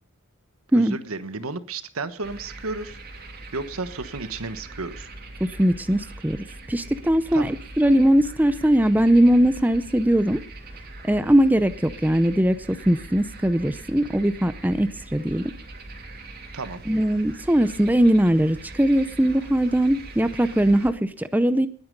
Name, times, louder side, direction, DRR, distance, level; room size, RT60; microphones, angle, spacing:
voice 1, 0.7-3.0 3.5-5.1 7.3-7.5 16.5-16.8, right 3 dB, 80° right, 12 dB, 1.2 m, -32 dB
sound 1, 2.2-20.9, right 2 dB, 45° right, 2.7 m, -41 dB
voice 2, 5.4-10.4 11.0-15.5 16.9-21.7, right 1 dB, 10° right, 12 dB, 0.6 m, -20 dB
20.0 x 9.8 x 5.3 m, 0.43 s
head